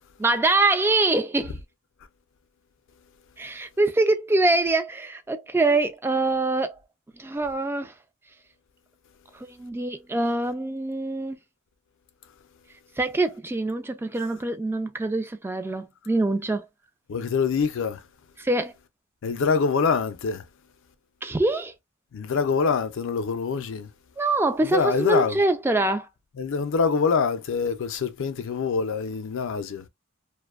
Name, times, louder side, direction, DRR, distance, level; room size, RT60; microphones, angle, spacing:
voice 1, 0.2-1.6 3.4-6.8 7.2-7.9 9.5-11.4 13.0-16.7 18.4-18.7 21.2-21.7 24.2-26.1, right 2 dB, 10° right, 0.3 m, -24 dB
voice 2, 17.1-18.0 19.2-20.5 22.1-23.9 24.6-25.4 26.4-29.9, left 5 dB, 65° left, 0.4 m, -25 dB
2.5 x 2.1 x 2.3 m
head